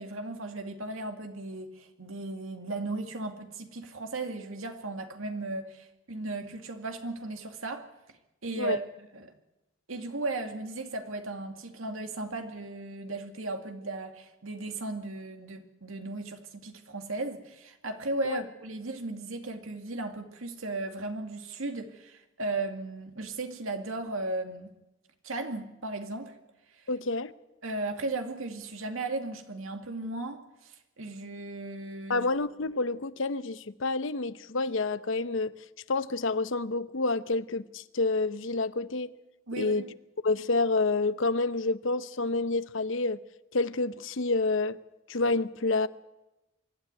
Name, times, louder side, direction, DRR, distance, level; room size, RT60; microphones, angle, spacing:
voice 1, 0.0-7.9 8.4-9.3 9.9-24.7 25.2-26.3 26.8-26.9 27.6-32.3 39.5-39.9, right 2 dB, 85° right, 2.3 m, -36 dB
voice 2, 26.9-27.3 32.1-35.6 35.9-39.1 39.6-39.9 40.2-43.2 43.5-44.8 45.1-45.9, left 3 dB, 65° left, 0.8 m, -28 dB
24.0 x 13.0 x 9.5 m
head